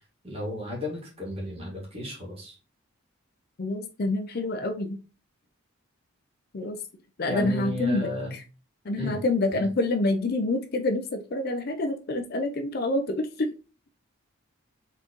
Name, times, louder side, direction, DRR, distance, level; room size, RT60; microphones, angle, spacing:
voice 1, 0.2-2.6 7.2-8.3 9.0-9.2 9.5-9.7, left 1 dB, 25° right, -3 dB, 2.1 m, -33 dB
voice 2, 3.6-5.0 6.5-6.8 7.2-8.1 8.9-13.5, left 2 dB, 45° left, 7 dB, 0.5 m, -27 dB
4.5 x 3.8 x 2.9 m, 0.32 s
head